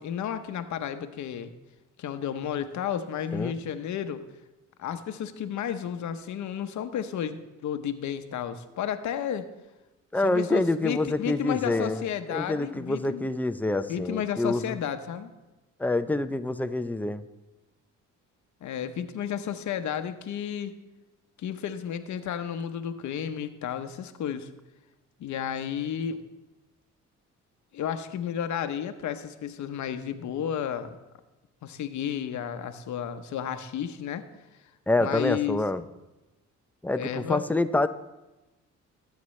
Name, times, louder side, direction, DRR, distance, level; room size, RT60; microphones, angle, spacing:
voice 1, 0.0-1.5 2.0-4.2 4.8-9.5 10.2-13.3 13.9-15.3 18.6-20.7 21.4-24.5 25.2-26.2 27.7-31.0 31.6-34.2 35.0-35.6 36.9-37.4, left 9 dB, 70° left, 9 dB, 0.9 m, -32 dB
voice 2, 10.1-12.0 12.3-14.8 15.8-17.2 34.9-35.8 36.8-37.9, left 2 dB, 5° left, 10 dB, 0.5 m, -27 dB
19.0 x 8.4 x 3.2 m, 1.0 s
cardioid pair, 90°, 30 cm